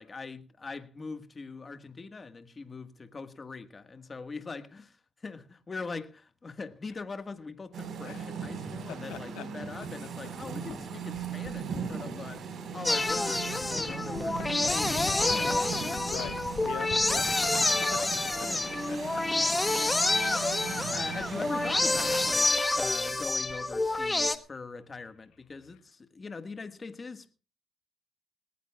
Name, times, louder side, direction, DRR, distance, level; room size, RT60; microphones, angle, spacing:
voice 1, 0.0-16.1 17.8-17.9 18.3-18.6 19.6-20.1 20.6-27.3, left 4 dB, 30° left, 1.6 m, -42 dB
sound 1, 6.9-7.0 7.8-8.1 8.6-8.7 9.1-9.2 9.9-10.1 10.4-10.8 11.1-12.4 12.9-13.0 13.6-19.1 20.0-20.9 22.6-23.7 24.0-24.3 24.5-24.6 24.9-25.4, left 7 dB, 70° left, 3.3 m, -45 dB
sound 2, 7.7-22.3, right 6 dB, 65° right, 4.6 m, -39 dB
voice 2, 8.9-9.4 16.0-16.4 16.6-18.0 18.4-18.5 18.9-19.0 19.8-20.6, left 12 dB, 90° left, 0.8 m, -43 dB
sound 3, 12.8-24.4, left 2 dB, 15° left, 1.3 m, -28 dB
20.0 x 18.5 x 2.4 m
cardioid pair, 90°, 0 cm